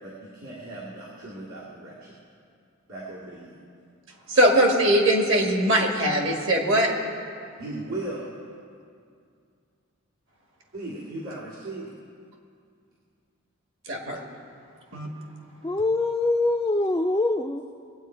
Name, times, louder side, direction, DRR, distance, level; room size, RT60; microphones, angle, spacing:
voice 1, 0.0-2.2 2.9-3.6 7.6-8.3 10.7-11.9, right 2 dB, 80° right, -7 dB, 2.3 m, -37 dB
voice 2, 4.3-6.9 13.9-14.2 14.9-15.1, right 1 dB, 60° right, 1 dB, 1.8 m, -21 dB
voice 3, 15.6-17.6, left 2 dB, 15° left, 0 dB, 0.3 m, -24 dB
21.0 x 8.9 x 4.5 m, 2.3 s
head